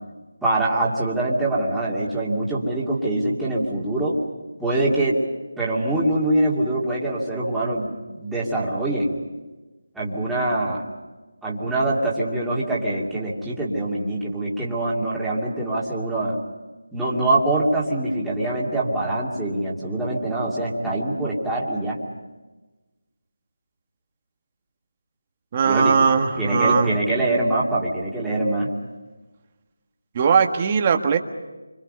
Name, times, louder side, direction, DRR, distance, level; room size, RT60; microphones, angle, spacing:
voice 1, 0.4-4.2 4.6-5.2 5.6-9.1 9.9-10.8 11.4-16.4 16.9-22.0 25.6-26.0 26.4-28.7, right 1 dB, ahead, -9 dB, 2.6 m, -24 dB
voice 2, 25.5-26.9 30.1-31.2, right 6 dB, 25° right, 5 dB, 1.5 m, -19 dB
29.0 x 25.5 x 5.5 m, 1.2 s
figure-of-eight pair, 170°, 0 cm